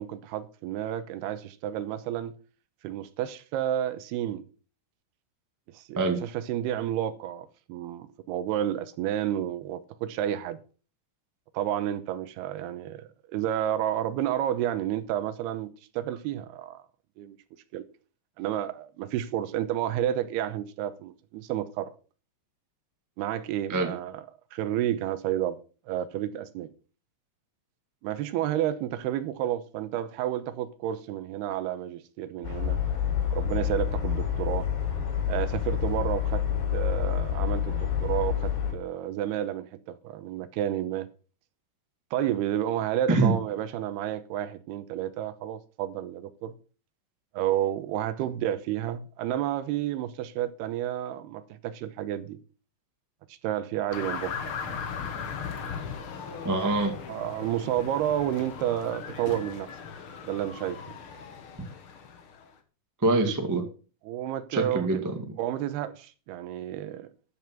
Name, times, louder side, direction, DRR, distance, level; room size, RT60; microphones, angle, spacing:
voice 1, 0.0-2.3 2.8-4.4 5.7-10.6 11.5-16.8 17.2-17.4 17.7-17.9 18.4-21.9 23.2-24.3 24.5-25.6 25.9-26.7 28.0-32.8 33.3-34.7 35.3-36.4 36.7-41.1 42.1-46.5 47.3-52.4 53.4-54.5 57.1-59.8 60.2-60.8 64.1-65.0 65.4-67.1, right 11 dB, 90° right, 2.9 m, -31 dB
sound 1, 32.4-38.7, left 9 dB, 80° left, 7.1 m, -28 dB
sound 2, 53.9-62.5, left 6 dB, 65° left, 1.3 m, -38 dB
voice 2, 56.4-56.9 63.0-63.6 64.5-65.0, right 2 dB, 30° right, 0.3 m, -24 dB
13.0 x 6.9 x 6.0 m
omnidirectional pair, 4.6 m